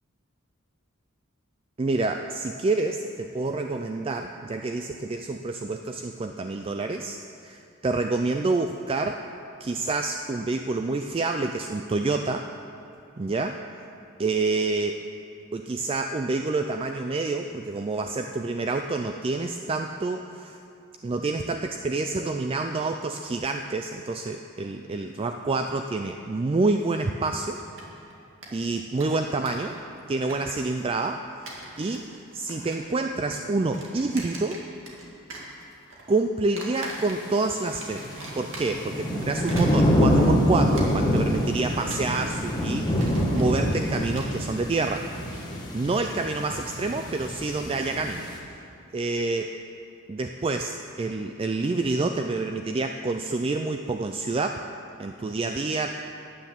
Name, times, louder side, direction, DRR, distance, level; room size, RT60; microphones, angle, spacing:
voice 1, 1.8-9.2 9.6-12.5 13.2-13.6 14.2-15.0 15.5-20.6 21.0-27.6 28.5-29.7 30.1-31.4 31.8-34.6 36.1-38.0 38.3-45.1 45.7-48.2 48.9-49.5 50.1-54.6 55.0-55.9, right 3 dB, 25° right, 5 dB, 0.3 m, -28 dB
sound 1, 27.6-28.1 28.4-28.5 28.8-29.7 30.0-30.8 31.3-32.1 32.3-32.9 33.2-35.0 35.3-36.0 36.6-37.4 37.8-38.9 39.3-46.0, right 2 dB, 60° right, 2.1 m, -42 dB
sound 2, 37.9-48.4, equal, 20° left, 1.3 m, -26 dB
10.0 x 9.2 x 7.3 m, 2.6 s
head